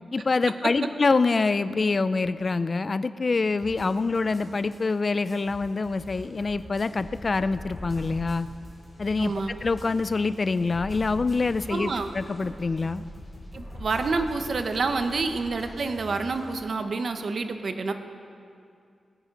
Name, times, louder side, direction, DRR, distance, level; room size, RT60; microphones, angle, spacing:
voice 1, 0.1-8.5 9.0-13.0, left 3 dB, 35° left, 13 dB, 0.4 m, -25 dB
sound 1, 3.6-16.6, left 1 dB, 15° left, 3.8 m, -43 dB
voice 2, 9.2-9.5 11.7-12.1 13.5-17.9, right 4 dB, 55° right, 7 dB, 0.8 m, -28 dB
19.5 x 9.0 x 5.2 m, 2.4 s
wide cardioid pair, 140°, 0 cm